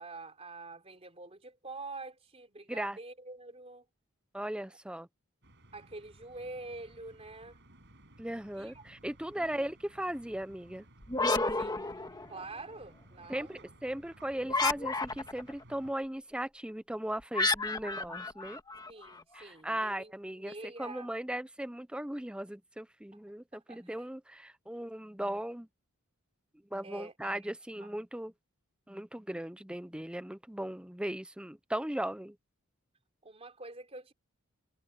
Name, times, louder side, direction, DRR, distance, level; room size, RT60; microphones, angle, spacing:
voice 1, 0.0-3.9 5.7-7.6 8.6-8.8 9.3-9.7 11.5-11.8 12.3-13.7 18.9-21.1 23.5-24.0 26.8-27.9 33.2-34.1, right 3 dB, 30° right, 3.6 m, -47 dB
voice 2, 4.3-5.1 8.2-10.8 13.3-18.6 19.3-20.5 20.8-25.7 26.7-28.3 28.9-32.4, right 1 dB, 5° right, 0.6 m, -37 dB
sound 1, 5.4-15.9, right 1 dB, 55° right, 8.0 m, -58 dB
sound 2, 11.0-12.6 14.5-15.5 17.3-19.2, left 3 dB, 20° left, 1.9 m, -31 dB
head